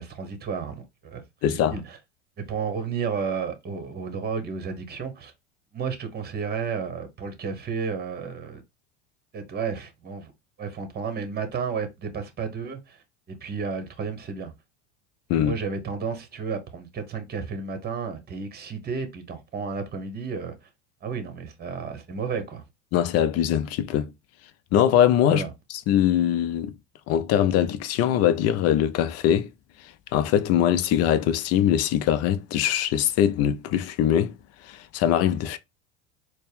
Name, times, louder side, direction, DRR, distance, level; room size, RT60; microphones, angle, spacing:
voice 1, 0.0-2.0 2.4-5.3 5.7-8.6 9.3-10.3 10.6-14.5 15.4-20.7 21.0-22.6 25.3-25.5, right 5 dB, 25° right, 1.1 m, -32 dB
voice 2, 1.4-1.8 15.3-15.5 22.9-24.1 24.7-25.4 25.7-26.7 27.1-29.5 30.1-34.3 34.6-35.6, left 10 dB, 40° left, 0.5 m, -22 dB
4.2 x 2.2 x 3.4 m
hypercardioid pair, 95°, 38 cm